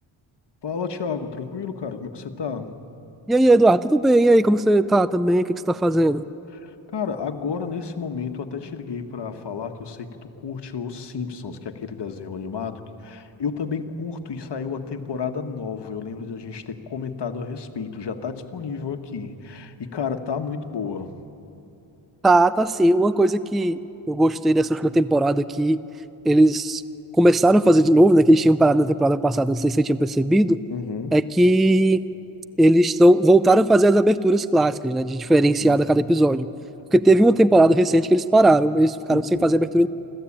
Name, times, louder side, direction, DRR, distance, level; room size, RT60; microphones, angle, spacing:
voice 1, 0.6-2.8 6.5-21.1 30.7-31.2 35.6-35.9 39.1-39.5, left 5 dB, 55° left, 7 dB, 1.6 m, -31 dB
voice 2, 3.3-6.2 22.2-23.8 24.1-25.8 26.3-26.8 27.1-30.6 31.1-32.0 32.6-36.5 36.9-39.9, right 1 dB, ahead, 15 dB, 0.4 m, -17 dB
26.0 x 15.0 x 8.7 m, 2.8 s
cardioid pair, 85°, 49 cm